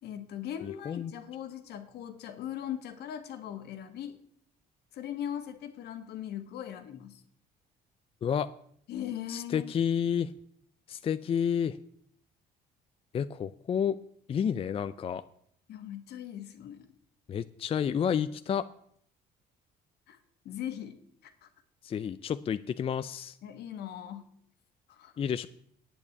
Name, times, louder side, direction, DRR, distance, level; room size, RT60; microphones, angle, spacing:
voice 1, 0.0-4.2 4.9-7.2 8.9-9.7 15.7-16.9 20.1-20.2 20.4-21.5 23.4-24.3 24.9-25.1, left 10 dB, 75° left, 9 dB, 1.5 m, -40 dB
voice 2, 0.6-1.1 8.2-8.5 9.3-10.3 10.9-11.8 13.1-14.0 14.3-15.2 17.3-18.7 21.8-23.4 25.2-25.5, left 8 dB, 35° left, 12 dB, 0.4 m, -30 dB
8.9 x 8.2 x 8.4 m, 0.66 s
cardioid pair, 110°, 17 cm